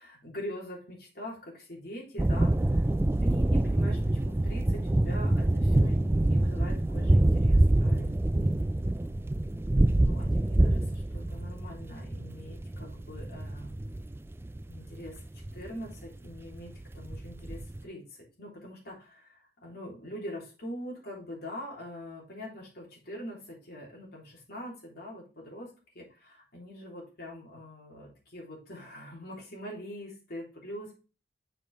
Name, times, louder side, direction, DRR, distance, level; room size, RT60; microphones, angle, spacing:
voice 1, 0.0-2.9 3.2-8.2 10.0-13.8 14.7-25.7 25.9-30.9, equal, 60° left, -2 dB, 3.3 m, -43 dB
sound 1, 2.2-17.8, right 1 dB, 15° right, 0.3 m, -26 dB
6.7 x 5.3 x 4.2 m, 0.34 s
head